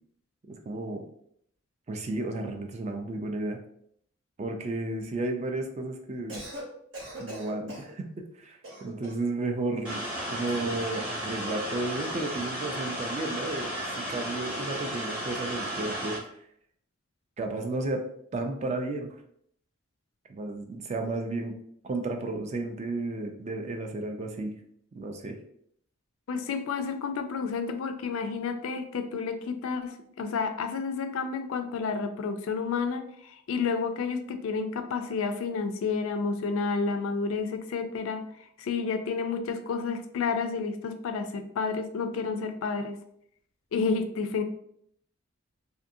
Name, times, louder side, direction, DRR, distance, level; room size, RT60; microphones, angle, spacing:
voice 1, 0.5-1.0 1.9-3.6 4.4-6.4 7.2-8.1 8.4-16.2 17.4-18.0 18.3-19.1 20.3-21.5 21.8-24.5 25.0-25.4, right 2 dB, 30° right, 4 dB, 0.3 m, -33 dB
Cough, 6.1-6.7 6.9-7.9 8.6-9.3 10.5-10.8, right 1 dB, 65° right, 1.0 m, -41 dB
sound 1, 9.8-16.2, right 1 dB, 5° right, 0.9 m, -34 dB
voice 2, 26.3-38.3 38.6-43.0 43.7-44.4, left 5 dB, 75° left, 8 dB, 0.3 m, -30 dB
2.6 x 2.5 x 2.6 m, 0.69 s
head